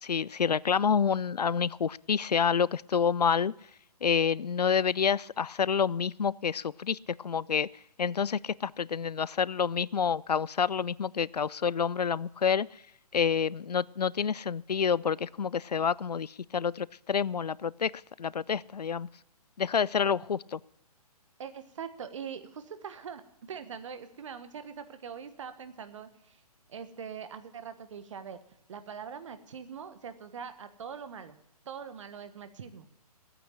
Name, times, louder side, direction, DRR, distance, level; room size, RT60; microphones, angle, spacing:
voice 1, 0.0-3.5 4.0-7.7 8.0-12.7 13.1-17.9 18.2-19.1 19.6-20.6, left 6 dB, 80° left, 23 dB, 0.4 m, -28 dB
voice 2, 21.4-23.2 23.5-26.4 26.7-28.4 28.7-31.4 31.6-32.9, right 7 dB, 50° right, 11 dB, 1.4 m, -42 dB
15.0 x 9.0 x 7.4 m, 0.76 s
figure-of-eight pair, 135°, 20 cm